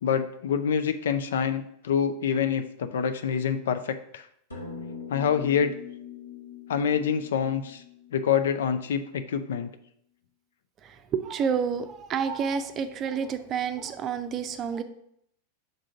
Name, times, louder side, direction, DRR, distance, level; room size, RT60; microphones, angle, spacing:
voice 1, 0.0-4.3 5.1-5.7 6.7-7.8 8.1-9.7, left 7 dB, 60° left, 9 dB, 0.5 m, -26 dB
sound 1, 4.5-9.2, left 6 dB, 75° left, 1.9 m, -43 dB
voice 2, 10.8-14.8, right 6 dB, 30° right, 9 dB, 0.5 m, -29 dB
5.4 x 3.7 x 5.9 m, 0.71 s
figure-of-eight pair, 90°, 0 cm